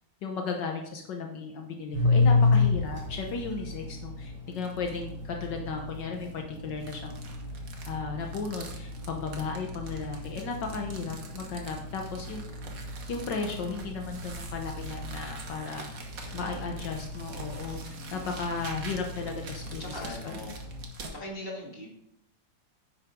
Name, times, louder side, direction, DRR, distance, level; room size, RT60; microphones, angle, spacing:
voice 1, 0.2-7.2 7.9-12.4 13.1-16.0 16.3-20.4, left 4 dB, 75° left, 2 dB, 1.7 m, -35 dB
sound 1, 1.9-20.8, left 3 dB, 5° right, 3.8 m, -32 dB
sound 2, 2.8-3.4 3.8-3.9 4.5-5.1 5.9-21.2, right 3 dB, 50° right, 1.6 m, -46 dB
voice 2, 16.1-17.0 19.8-20.6 21.1-21.9, left 2 dB, 30° left, -2 dB, 2.3 m, -41 dB
10.0 x 8.0 x 3.7 m, 0.76 s
omnidirectional pair, 2.0 m